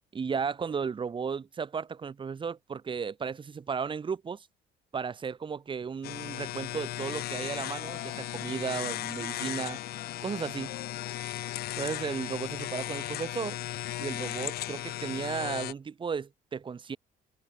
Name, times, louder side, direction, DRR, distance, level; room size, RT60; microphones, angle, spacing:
voice 1, 0.1-4.5 4.9-9.8 10.2-10.8 11.8-13.6 14.0-17.0, right 6 dB, 30° right, 1.4 m, -34 dB
sound 1, 6.0-15.7, left 15 dB, 65° left, 0.9 m, -36 dB
cardioid pair, 110°, 17 cm